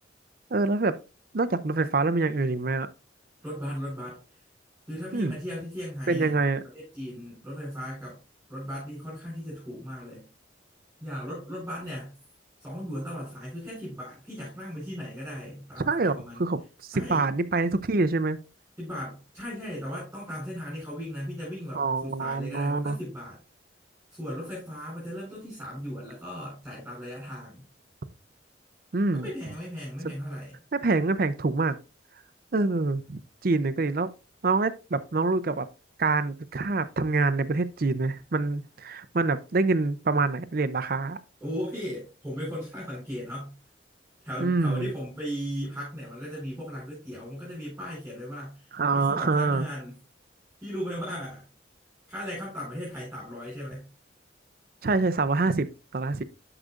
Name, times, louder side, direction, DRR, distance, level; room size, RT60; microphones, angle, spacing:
voice 1, 0.5-1.0 1.3-2.9 5.1-5.4 6.1-6.6 15.9-16.6 16.9-18.4 21.7-23.0 28.9-29.3 30.0-30.1 30.7-31.8 32.5-34.1 34.4-35.7 36.0-41.2 44.4-44.9 48.7-49.7 54.8-55.7 55.9-56.2, right 3 dB, 50° right, 0.6 m, -26 dB
voice 2, 3.4-4.2 4.9-6.4 6.7-8.2 8.5-10.3 11.0-12.1 12.6-16.4 16.9-17.3 18.8-23.4 24.1-27.6 29.1-30.6 41.4-43.5 44.2-49.9 50.6-51.4 52.1-53.8, equal, 5° right, 4.4 m, -37 dB
13.0 x 4.9 x 2.5 m
head